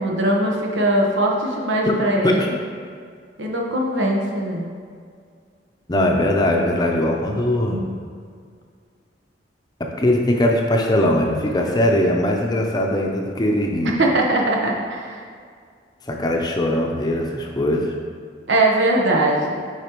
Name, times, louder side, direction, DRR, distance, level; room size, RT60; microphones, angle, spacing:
voice 1, 0.0-2.5 3.4-4.7 14.0-15.3 18.5-19.6, right 1 dB, 80° right, -1 dB, 1.0 m, -20 dB
voice 2, 5.9-7.8 9.8-14.0 16.1-17.9, left 1 dB, 20° left, 1 dB, 0.6 m, -20 dB
8.2 x 4.9 x 3.0 m, 2.1 s
head